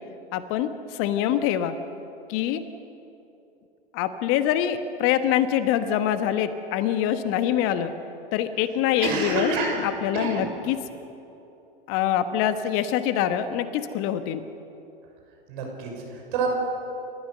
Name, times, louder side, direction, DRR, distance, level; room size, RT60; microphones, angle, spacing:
voice 1, 0.3-1.8 2.3-2.6 3.9-7.9 8.3-9.5 9.8-10.8 11.9-14.4, left 10 dB, 45° left, 10 dB, 1.3 m, -24 dB
voice 2, 9.0-9.8 10.1-10.5 15.5-16.5, right 3 dB, 55° right, 1 dB, 6.3 m, -28 dB
29.5 x 14.5 x 6.8 m, 2.9 s
hypercardioid pair, 95°, 30 cm